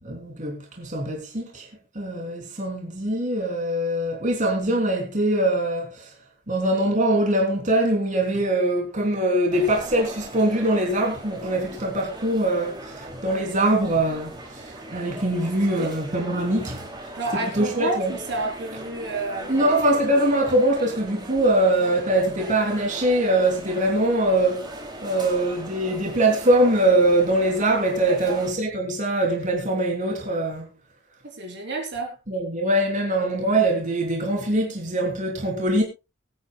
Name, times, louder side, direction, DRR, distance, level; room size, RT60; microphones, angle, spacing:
voice 1, 0.0-1.7 1.9-6.1 6.5-16.9 17.5-18.1 19.5-24.7 25.0-30.7 32.3-35.8, right 1 dB, 40° right, 3.5 m, -23 dB
sound 1, 9.5-28.5, right 1 dB, 25° right, 3.2 m, -39 dB
voice 2, 17.2-19.7 28.1-28.4 31.2-32.2, right 2 dB, 65° right, 3.7 m, -30 dB
23.0 x 9.5 x 2.4 m
head